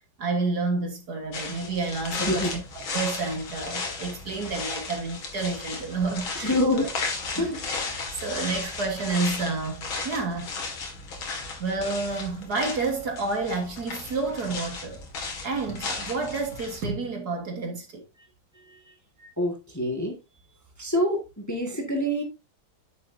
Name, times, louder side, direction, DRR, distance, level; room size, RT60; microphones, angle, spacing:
voice 1, 0.2-6.9 7.3-7.8 8.1-10.5 11.6-15.0 15.4-18.0 19.2-19.3, right 3 dB, 55° right, 1.9 m, -30 dB
sound 1, 1.3-16.8, left 4 dB, 85° left, 2.7 m, -35 dB
voice 2, 2.2-2.5 6.4-6.9 7.4-7.6 18.5-18.8 19.4-20.2 20.8-22.2, left 1 dB, 10° left, 1.5 m, -26 dB
9.7 x 6.7 x 2.6 m
omnidirectional pair, 2.2 m